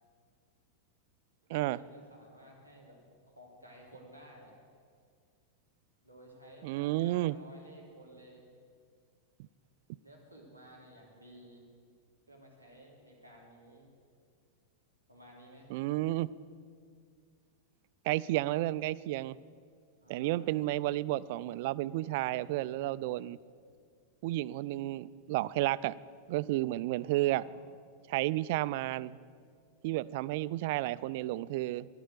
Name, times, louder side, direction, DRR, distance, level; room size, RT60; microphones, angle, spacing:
voice 1, 1.5-3.0 3.3-4.6 6.0-8.5 10.0-11.6 12.3-13.9 15.1-15.7 20.0-20.5 26.9-27.7, right 1 dB, 90° left, -2 dB, 3.2 m, -55 dB
voice 2, 6.6-7.4 15.7-16.3 18.0-19.4 20.1-23.4 24.2-26.0 26.3-27.4 28.1-29.2 29.8-31.9, right 16 dB, 50° right, 18 dB, 0.3 m, -32 dB
11.5 x 11.0 x 8.3 m, 2.1 s
figure-of-eight pair, 90°, 0 cm